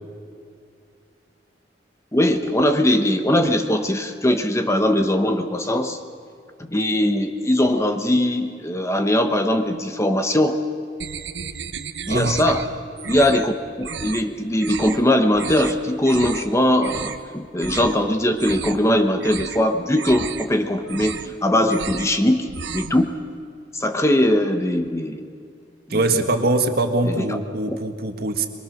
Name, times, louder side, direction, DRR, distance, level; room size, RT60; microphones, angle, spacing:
voice 1, 2.1-6.0 6.6-10.6 12.1-12.6 13.1-13.5 13.8-23.1 23.7-25.3 25.9-26.0 27.0-27.4 27.7-27.8, left 1 dB, 15° left, 6 dB, 1.0 m, -20 dB
sound 1, 11.0-12.7 13.0-13.5 13.8-14.2 14.6-15.0 15.3-15.7 16.0-16.5 16.8-17.2 17.6-18.0 18.3-18.9 19.2-19.6 19.9-20.5 20.8-21.3 21.6-22.1 22.4-23.0, right 6 dB, 85° right, 1.0 m, -33 dB
voice 2, 12.1-12.4 25.9-28.5, right 2 dB, 60° right, 6 dB, 1.8 m, -22 dB
24.0 x 23.0 x 6.5 m, 2.3 s
head